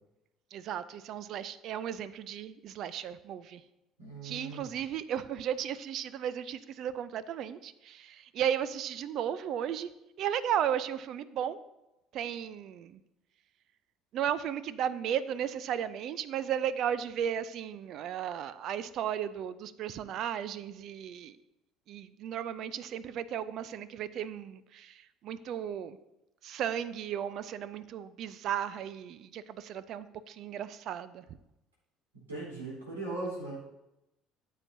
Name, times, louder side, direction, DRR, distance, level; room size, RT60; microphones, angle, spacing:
voice 1, 0.5-3.6 4.2-9.9 10.2-11.6 12.1-12.9 14.1-21.4 21.9-26.0 26.4-31.2, right 9 dB, 50° right, 16 dB, 0.4 m, -35 dB
voice 2, 4.0-4.7 32.3-33.6, right 2 dB, 80° right, -6 dB, 3.8 m, -38 dB
14.0 x 7.5 x 2.7 m, 0.90 s
figure-of-eight pair, 55°, 0 cm